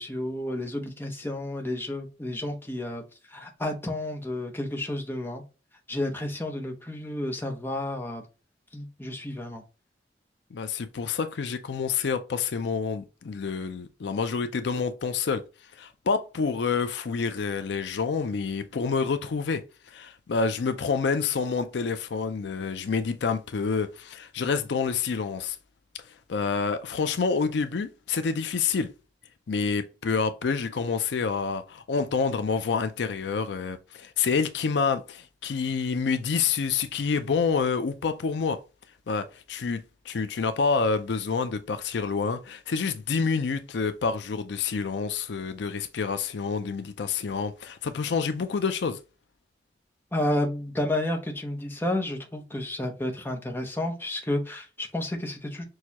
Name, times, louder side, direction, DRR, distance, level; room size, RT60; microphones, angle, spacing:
voice 1, 0.0-3.0 3.3-5.4 5.9-8.2 8.7-9.6 50.1-55.6, left 1 dB, 10° left, 0.7 m, -31 dB
voice 2, 10.5-15.4 15.7-19.6 19.9-25.6 26.3-28.9 29.5-38.6 39.1-49.0, left 5 dB, 70° left, 0.4 m, -28 dB
6.2 x 2.3 x 2.9 m
head